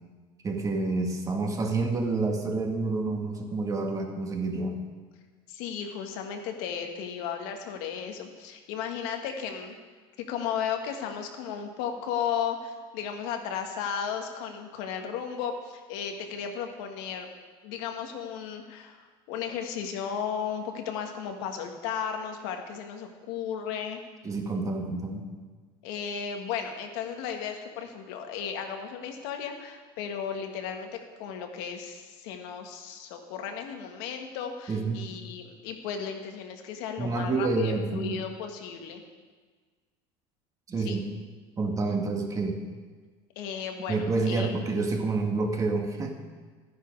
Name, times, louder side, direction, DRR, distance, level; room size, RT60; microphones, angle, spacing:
voice 1, 0.4-4.8 24.2-25.3 34.7-35.0 37.0-38.2 40.7-41.0 41.6-42.6 43.9-46.2, right 3 dB, 25° right, 3 dB, 1.7 m, -28 dB
voice 2, 5.5-9.8 10.2-17.3 17.6-24.0 25.8-39.0 40.8-41.0 43.3-44.6, left 7 dB, 75° left, 4 dB, 1.6 m, -35 dB
12.5 x 10.5 x 4.7 m, 1.4 s
supercardioid pair, 120°, 13 cm